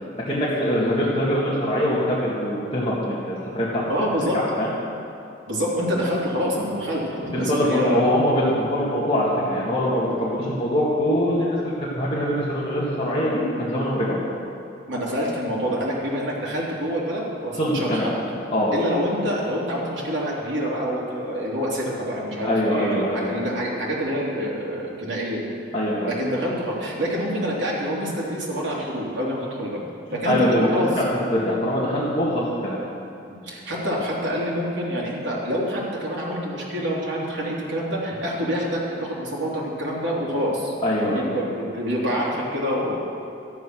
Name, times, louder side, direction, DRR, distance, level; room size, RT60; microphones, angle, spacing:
voice 1, 0.3-3.8 4.3-4.7 7.3-14.2 17.5-18.1 18.5-18.7 22.4-23.5 25.7-26.1 30.3-30.7 31.0-31.1 31.3-32.8 40.8-41.3, equal, 30° left, -8 dB, 2.0 m, -23 dB
voice 2, 3.9-4.4 5.5-8.0 14.9-18.1 18.7-25.4 26.0-29.8 30.1-30.9 33.3-43.0, equal, 75° right, -5 dB, 3.3 m, -26 dB
13.0 x 10.0 x 6.2 m, 2.7 s
head